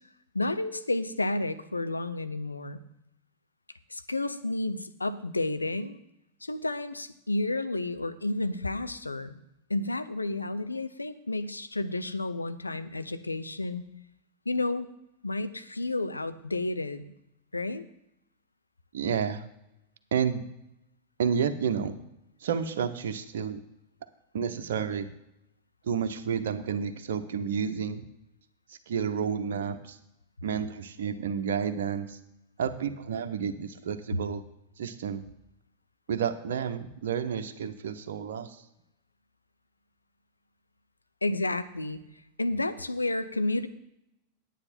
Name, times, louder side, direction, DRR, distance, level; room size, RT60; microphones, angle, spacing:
voice 1, 0.3-2.8 3.9-6.0 6.4-9.4 9.7-13.8 14.5-14.9 15.2-17.0 17.5-17.8 41.2-42.0 42.4-43.7, left 2 dB, 80° left, 11 dB, 0.7 m, -31 dB
voice 2, 18.9-19.4 20.1-20.4 21.2-22.0 22.4-23.6 24.3-25.1 25.8-28.0 28.7-30.0 30.4-32.2 32.6-34.4 34.8-35.2 36.1-38.6, right 7 dB, 60° right, 6 dB, 0.8 m, -30 dB
9.7 x 9.1 x 4.3 m, 0.85 s
figure-of-eight pair, 90°, 0 cm